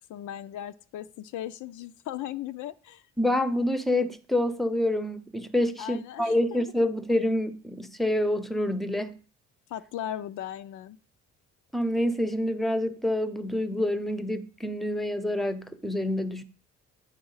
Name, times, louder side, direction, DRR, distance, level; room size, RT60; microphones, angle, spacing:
voice 1, 0.1-3.0 5.8-6.6 9.7-11.0, left 11 dB, 80° left, 0.5 m, -37 dB
voice 2, 3.2-9.2 11.7-16.4, left 1 dB, ahead, 0.6 m, -27 dB
9.0 x 3.5 x 5.6 m
cardioid pair, 90°, 30 cm